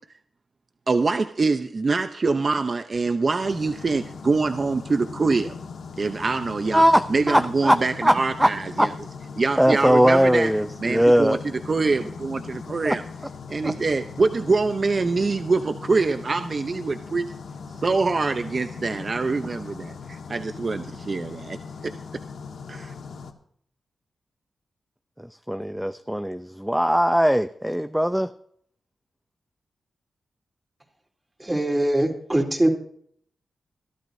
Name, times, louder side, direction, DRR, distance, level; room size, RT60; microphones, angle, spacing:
voice 1, 0.9-5.5 6.0-6.8 7.1-8.9 9.4-10.5 10.8-13.0 13.5-17.2 17.8-21.6 21.8-21.9 22.7-22.9, right 3 dB, 50° right, 8 dB, 0.8 m, -24 dB
sound 1, 3.4-23.3, left 5 dB, 80° left, 1.6 m, -39 dB
voice 2, 6.7-8.5 8.8-8.9 9.6-11.4 12.8-13.0 13.6-13.7 25.5-28.3, equal, 5° right, 10 dB, 0.7 m, -20 dB
voice 3, 31.4-32.7, right 1 dB, 20° right, 2 dB, 3.7 m, -22 dB
22.5 x 12.0 x 2.8 m, 0.63 s
cardioid pair, 50°, 0 cm